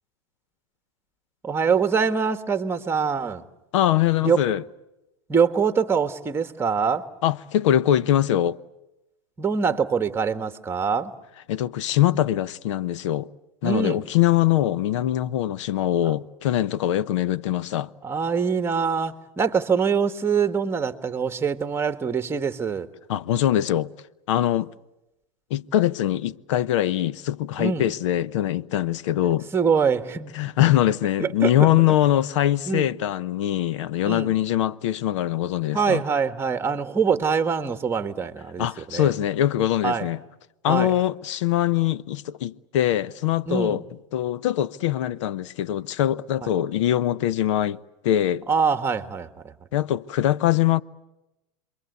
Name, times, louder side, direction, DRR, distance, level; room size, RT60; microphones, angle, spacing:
voice 1, 1.4-3.5 4.2-4.4 5.3-7.0 9.4-11.1 13.6-14.0 18.0-22.9 27.6-27.8 29.5-30.3 31.2-31.7 32.7-32.9 34.0-34.3 35.7-39.1 39.8-40.1 40.6-40.9 43.4-43.8 46.4-46.5 48.5-49.5, right 6 dB, 15° right, 1.7 m, -24 dB
voice 2, 3.7-4.6 7.2-8.6 11.5-13.3 13.6-17.9 23.1-23.9 24.3-24.7 25.5-29.5 30.3-36.0 38.6-40.2 40.6-43.8 44.1-48.4 49.7-50.8, left 12 dB, 75° left, 0.9 m, -23 dB
29.5 x 23.0 x 8.2 m
supercardioid pair, 125°, 16 cm